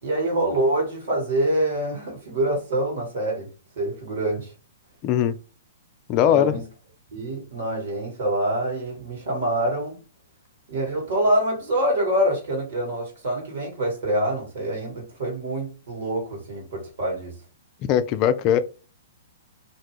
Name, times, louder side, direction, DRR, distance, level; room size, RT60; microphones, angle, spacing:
voice 1, 0.0-3.5 3.8-4.5 6.2-6.6 7.1-10.0 10.7-17.3, right 1 dB, 55° right, 1.5 m, -25 dB
voice 2, 5.0-5.4 6.1-6.6 17.9-18.6, left 10 dB, 35° left, 0.3 m, -20 dB
2.5 x 2.3 x 3.1 m
figure-of-eight pair, 115°, 0 cm